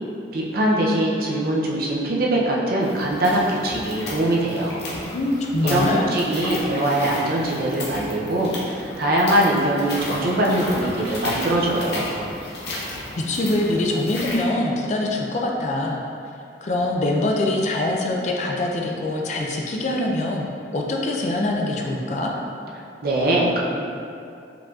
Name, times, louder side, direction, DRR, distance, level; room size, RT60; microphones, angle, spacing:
voice 1, 0.3-4.8 5.6-12.1 23.0-23.6, right 1 dB, 55° right, -3 dB, 0.6 m, -22 dB
sound 1, 2.8-14.4, left 1 dB, 60° left, 0.8 m, -34 dB
voice 2, 5.1-6.0 13.2-16.0 16.6-20.5 20.7-22.3, left 2 dB, 40° left, 0 dB, 0.4 m, -24 dB
4.7 x 3.8 x 2.4 m, 2.6 s
head